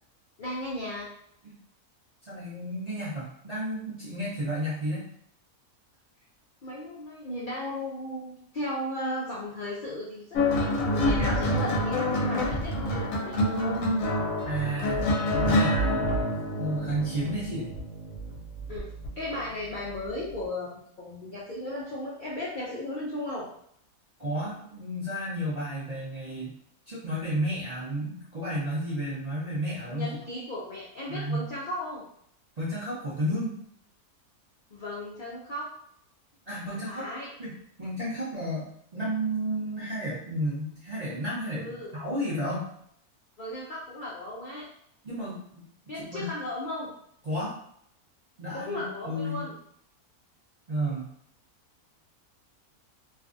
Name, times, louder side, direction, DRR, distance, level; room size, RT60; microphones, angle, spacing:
voice 1, 0.4-1.1 6.6-13.8 18.7-18.9 19.2-23.5 29.9-32.1 34.7-35.7 36.7-37.3 41.5-41.9 43.4-44.7 45.9-46.9 48.5-49.6, left 1 dB, 90° left, -6 dB, 0.4 m, -36 dB
voice 2, 2.3-5.0 14.4-16.3 16.6-17.7 24.2-26.5 26.9-30.2 31.1-31.5 32.6-33.5 36.5-37.0 37.4-37.5 37.8-42.7 45.0-45.7 45.9-46.3 47.2-47.5 48.4-49.5 50.7-51.1, right 1 dB, 50° right, -9 dB, 0.5 m, -32 dB
sound 1, 10.4-19.1 20.1-20.3, left 1 dB, 65° left, 0.9 m, -27 dB
2.6 x 2.4 x 2.5 m, 0.70 s
omnidirectional pair, 1.6 m